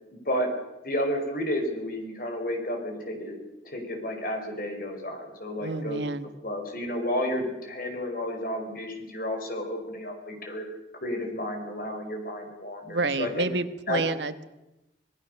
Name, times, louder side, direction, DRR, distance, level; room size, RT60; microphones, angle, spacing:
voice 1, 0.1-0.5 0.8-3.4 3.6-6.0 6.4-10.6 11.0-13.5 13.9-14.0, left 1 dB, 50° left, 4 dB, 4.9 m, -31 dB
voice 2, 5.6-6.3 12.9-14.5, right 3 dB, 70° right, 11 dB, 1.3 m, -29 dB
26.0 x 18.5 x 6.5 m, 0.96 s
head